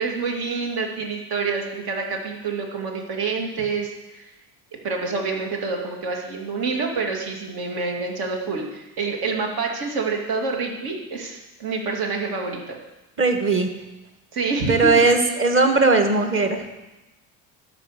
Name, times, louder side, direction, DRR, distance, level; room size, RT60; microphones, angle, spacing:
voice 1, 0.0-4.3 4.8-12.8 14.3-14.9, right 4 dB, 75° right, 1 dB, 2.5 m, -27 dB
voice 2, 13.2-13.7 14.7-16.6, right 3 dB, 35° right, 5 dB, 1.4 m, -18 dB
13.0 x 5.2 x 6.4 m, 1.0 s
cardioid pair, 120°, 38 cm